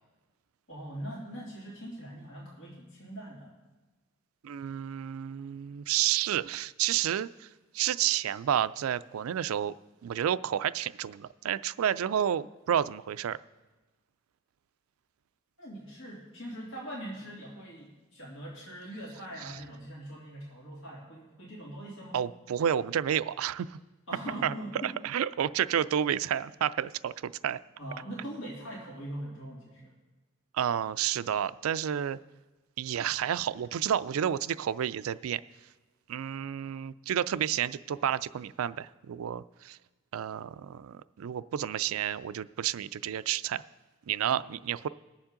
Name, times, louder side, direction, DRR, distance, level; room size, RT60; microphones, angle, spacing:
voice 1, 0.7-3.5 15.6-22.2 24.1-25.0 27.8-29.9 44.2-44.5, right 1 dB, 75° left, -4 dB, 2.8 m, -42 dB
voice 2, 4.4-7.5 7.7-9.7 10.0-13.4 22.1-23.8 24.4-24.5 24.8-27.6 30.5-32.2 32.8-35.4 36.1-39.8 40.1-43.6 44.1-44.9, right 9 dB, 90° right, 16 dB, 0.4 m, -30 dB
21.0 x 7.2 x 3.8 m, 1.2 s
head